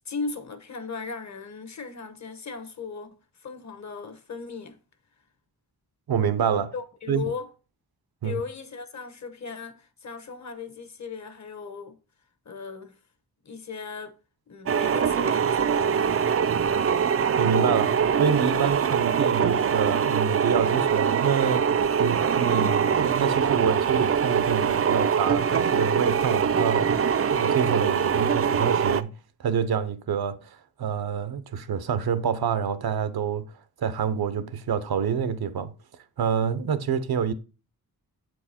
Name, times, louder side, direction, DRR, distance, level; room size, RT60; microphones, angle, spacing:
voice 1, 0.0-4.8 6.7-7.5 8.2-12.0 12.4-13.0 13.4-14.2 14.5-16.2, left 5 dB, 50° left, 1.0 m, -37 dB
voice 2, 6.1-6.7 7.1-7.2 8.2-8.4 17.4-33.5 33.8-35.7 36.2-37.3, right 7 dB, 80° right, 0.8 m, -27 dB
sound 1, 14.7-29.0, right 7 dB, 40° right, 0.4 m, -23 dB
8.0 x 4.6 x 4.2 m
wide cardioid pair, 145°, 37 cm